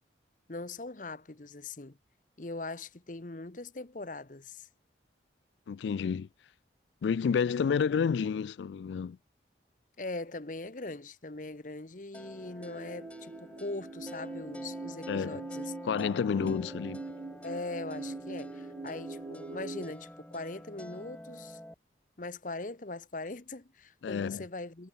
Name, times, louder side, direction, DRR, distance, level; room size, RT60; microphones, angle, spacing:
voice 1, 0.5-2.0 2.4-4.7 10.0-15.7 17.4-21.6 22.2-24.9, left 2 dB, 45° left, 1.0 m, -41 dB
voice 2, 5.7-6.3 7.0-9.2 15.1-15.4 15.8-17.0 24.0-24.4, left 6 dB, 75° left, 0.3 m, -30 dB
sound 1, 12.1-21.7, equal, 5° left, 1.6 m, -48 dB
sound 2, 12.6-19.9, right 3 dB, 35° right, 0.3 m, -42 dB
head